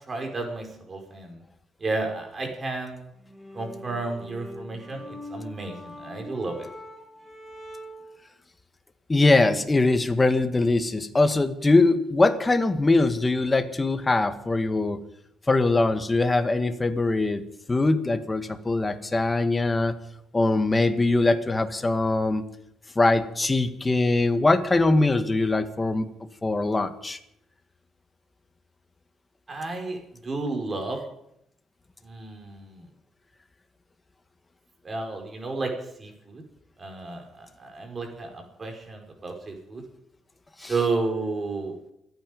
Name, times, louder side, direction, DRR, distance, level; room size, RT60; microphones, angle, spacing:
voice 1, 0.1-1.4 1.8-3.1 3.5-6.7 29.5-31.0 32.0-32.9 34.8-35.7 36.0-36.4 36.8-39.8 40.6-41.7, right 3 dB, 35° right, 3 dB, 5.3 m, -32 dB
sound 1, 3.1-8.2, left 1 dB, ahead, 5.1 m, -43 dB
voice 2, 9.1-15.0 15.5-17.4 17.7-19.9 20.3-22.4 23.0-26.1 26.4-27.2 40.6-40.7, left 2 dB, 20° left, 8 dB, 1.8 m, -22 dB
28.5 x 9.5 x 5.4 m, 0.76 s
cardioid pair, 90°, 0 cm